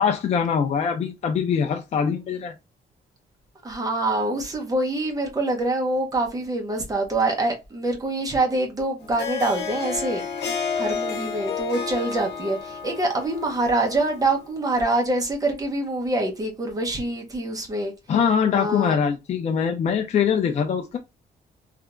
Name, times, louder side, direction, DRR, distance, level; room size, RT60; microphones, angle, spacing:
voice 1, 0.0-2.5 18.1-21.0, left 7 dB, 40° left, 0.4 m, -23 dB
voice 2, 3.6-10.2 10.7-17.9 18.5-18.9, right 2 dB, 20° right, 0.8 m, -25 dB
Harp, 9.0-14.5, left 6 dB, 80° left, 0.9 m, -31 dB
3.3 x 2.8 x 2.4 m
wide cardioid pair, 175°, 18 cm